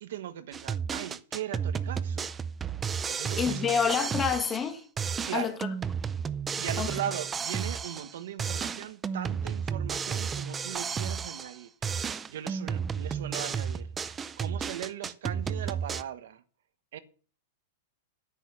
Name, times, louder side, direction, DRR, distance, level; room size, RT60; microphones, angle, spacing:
voice 1, 0.0-2.3 3.1-3.7 5.2-5.6 6.6-16.4 16.9-17.0, right 11 dB, 65° right, 1.3 m, -39 dB
sound 1, 0.5-4.7 5.0-8.1 8.4-11.6 11.8-16.0, right 6 dB, 15° right, 0.5 m, -33 dB
voice 2, 3.4-4.8 5.3-5.5 6.8-6.9, left 7 dB, 15° left, 1.5 m, -27 dB
10.5 x 10.0 x 6.2 m
supercardioid pair, 165°, 0 cm